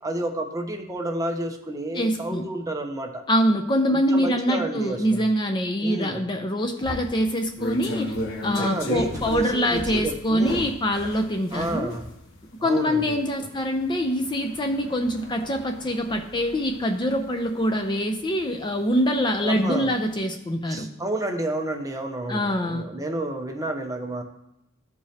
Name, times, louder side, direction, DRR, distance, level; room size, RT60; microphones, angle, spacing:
voice 1, 0.0-3.2 3.9-5.2 5.8-6.2 8.5-10.7 11.5-12.1 12.6-13.2 19.4-19.9 20.7-24.2, right 1 dB, 15° right, 3 dB, 0.8 m, -30 dB
voice 2, 1.9-2.5 3.3-8.1 8.4-11.9 12.6-20.9 22.3-22.8, equal, 20° left, 4 dB, 0.5 m, -24 dB
sound 1, 6.8-19.4 19.8-20.1, left 1 dB, 60° left, 1.0 m, -35 dB
14.0 x 4.8 x 2.8 m, 0.84 s
head